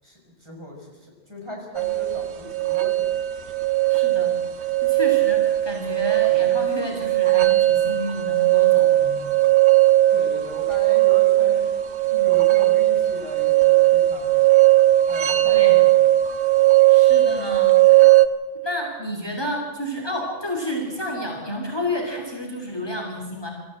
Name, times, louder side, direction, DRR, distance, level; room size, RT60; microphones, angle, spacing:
voice 1, 0.0-3.2 10.1-11.7 12.1-14.4 15.0-16.0, left 1 dB, 25° right, -1 dB, 6.1 m, -38 dB
sound 1, 1.8-18.3, right 16 dB, 85° right, 1.2 m, -18 dB
voice 2, 3.9-9.2 15.4-15.8 16.9-18.1 18.6-23.5, left 1 dB, 25° left, 1 dB, 3.0 m, -31 dB
26.5 x 14.5 x 7.7 m, 1.4 s
omnidirectional pair, 1.1 m